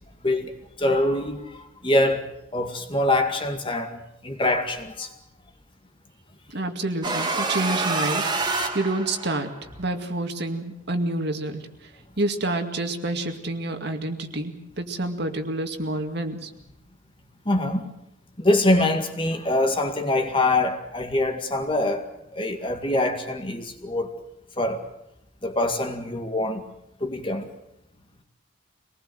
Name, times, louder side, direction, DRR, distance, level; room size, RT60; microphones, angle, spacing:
voice 1, 0.2-2.3 2.5-5.1 17.5-17.9 18.4-24.1 24.6-24.8 25.4-26.6 27.0-27.5, left 1 dB, 25° left, 2.1 m, -24 dB
voice 2, 6.5-9.5 9.8-11.9 12.2-16.5, right 2 dB, 55° right, 2.2 m, -28 dB
sound 1, 7.0-9.6, right 3 dB, 20° right, 2.1 m, -27 dB
25.0 x 19.5 x 7.9 m
head